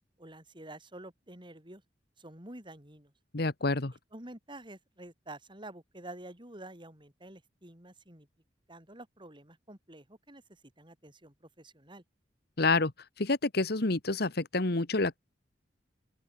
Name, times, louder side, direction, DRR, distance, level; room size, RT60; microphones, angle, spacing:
voice 1, 0.2-1.8 2.2-3.1 4.1-8.3 8.7-12.0, right 1 dB, 25° right, 6.7 m, -49 dB
voice 2, 3.3-3.9 12.6-12.9 13.2-15.2, left 3 dB, 60° left, 1.5 m, -28 dB
open air
head